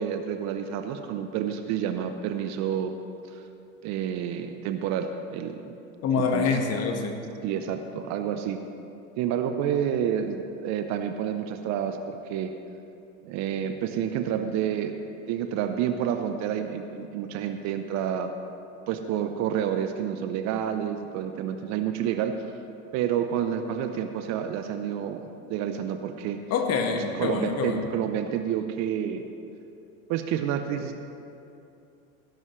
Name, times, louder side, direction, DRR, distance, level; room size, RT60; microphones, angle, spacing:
voice 1, 0.0-2.9 3.3-3.4 3.8-5.7 6.2-6.5 7.4-8.6 9.2-12.5 13.2-15.0 15.3-18.3 18.9-22.4 22.9-26.4 27.1-29.2 30.1-31.0, right 9 dB, 40° right, 7 dB, 0.7 m, -29 dB
voice 2, 6.0-7.2 26.5-27.9, left 5 dB, 35° left, 4 dB, 1.5 m, -26 dB
17.5 x 10.5 x 3.2 m, 2.7 s
figure-of-eight pair, 85°, 44 cm